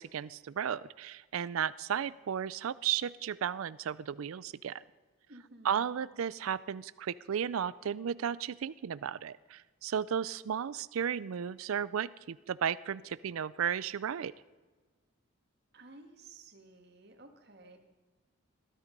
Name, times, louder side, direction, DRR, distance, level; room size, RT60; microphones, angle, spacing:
voice 1, 0.0-4.8 5.6-14.3, right 8 dB, 85° right, 17 dB, 0.4 m, -34 dB
voice 2, 5.3-5.9 15.7-17.8, right 2 dB, 50° right, 5 dB, 2.0 m, -54 dB
21.5 x 12.5 x 5.3 m, 1.3 s
head